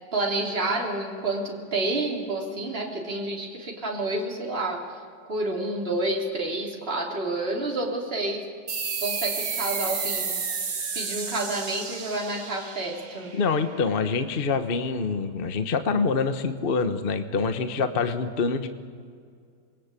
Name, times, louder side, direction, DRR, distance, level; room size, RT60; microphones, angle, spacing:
voice 1, 0.1-4.8 5.3-8.4 9.0-10.3 10.9-13.3, right 2 dB, 30° right, -1 dB, 3.6 m, -29 dB
sound 1, 8.7-13.8, right 5 dB, 75° right, 2.8 m, -32 dB
voice 2, 13.3-18.7, left 4 dB, 35° left, 9 dB, 1.1 m, -25 dB
27.0 x 21.5 x 8.4 m, 2.1 s
omnidirectional pair, 2.1 m